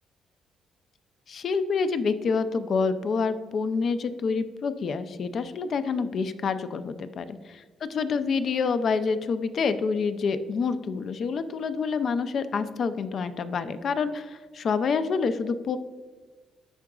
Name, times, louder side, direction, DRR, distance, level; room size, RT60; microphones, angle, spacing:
voice 1, 1.3-7.2 7.8-15.8, left 5 dB, 55° left, 11 dB, 0.4 m, -27 dB
10.5 x 3.8 x 2.3 m, 1.4 s
cardioid pair, 90°, 0 cm